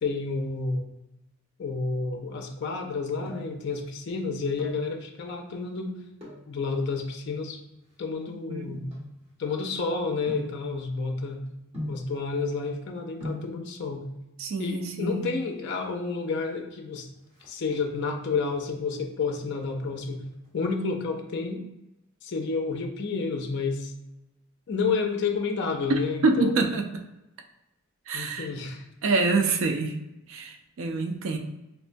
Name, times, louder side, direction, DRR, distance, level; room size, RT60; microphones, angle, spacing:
voice 1, 0.0-0.9 1.6-5.9 6.5-7.6 8.0-8.9 9.4-11.4 11.8-14.0 14.6-17.1 17.5-20.2 20.5-21.6 22.2-23.9 24.7-26.7 28.1-28.8, left 4 dB, 55° left, 3 dB, 0.4 m, -30 dB
sound 1, 2.8-3.7 4.4-4.9 6.1-6.5 7.2-9.6 10.3-10.7 11.7-12.2 12.9-13.0 13.2-13.6 14.7-15.2 15.5-15.6 15.8-16.0 16.3-16.7 17.0-18.1 18.5-18.9 19.3-20.5 20.7-20.8, left 1 dB, 30° right, 1.2 m, -39 dB
voice 2, 8.5-8.8 14.4-15.3 25.9-26.9 28.1-28.5 29.0-30.0 30.3-31.4, right 3 dB, 65° right, 4 dB, 0.4 m, -26 dB
4.3 x 2.1 x 2.6 m, 0.95 s
head